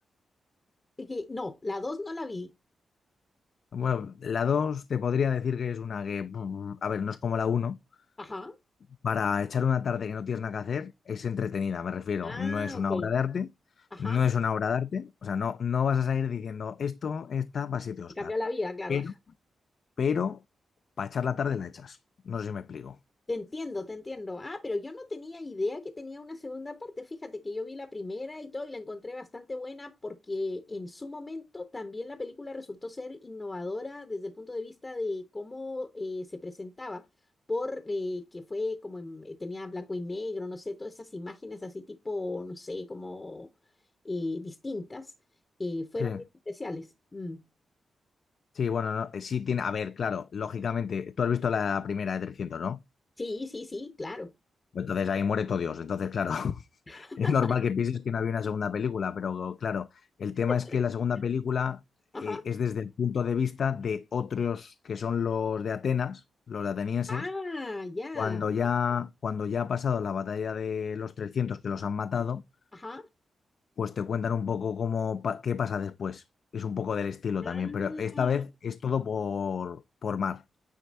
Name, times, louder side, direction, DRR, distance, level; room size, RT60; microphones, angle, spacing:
voice 1, 1.0-2.5 8.2-8.6 12.2-13.1 13.9-14.2 18.1-19.1 23.3-37.1 37.5-43.5 44.0-45.1 45.6-47.4 53.2-54.3 56.9-57.6 60.5-60.8 62.1-62.5 67.1-68.5 72.7-73.1 77.4-78.4, left 2 dB, 30° left, 0.7 m, -36 dB
voice 2, 3.7-7.8 9.0-13.5 13.8-18.3 18.9-19.1 20.0-20.4 21.0-22.0 22.3-23.0 46.0-46.2 48.5-52.8 54.7-61.8 62.2-67.3 68.2-72.4 73.8-76.2 76.5-80.4, left 7 dB, 65° left, 0.3 m, -30 dB
9.4 x 3.3 x 4.1 m
cardioid pair, 70°, 0 cm